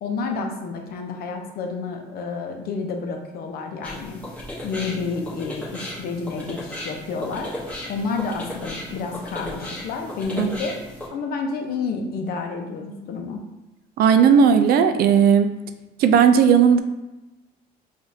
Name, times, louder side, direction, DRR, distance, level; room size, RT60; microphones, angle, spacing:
voice 1, 0.0-7.5 7.8-10.8 11.1-13.4, left 4 dB, 65° left, 3 dB, 0.7 m, -30 dB
sound 1, 3.8-11.1, left 1 dB, 10° left, 1.1 m, -35 dB
voice 2, 14.0-15.5 16.0-16.8, right 7 dB, 65° right, 8 dB, 0.4 m, -15 dB
4.9 x 2.6 x 2.7 m, 1.0 s
cardioid pair, 110°, 17 cm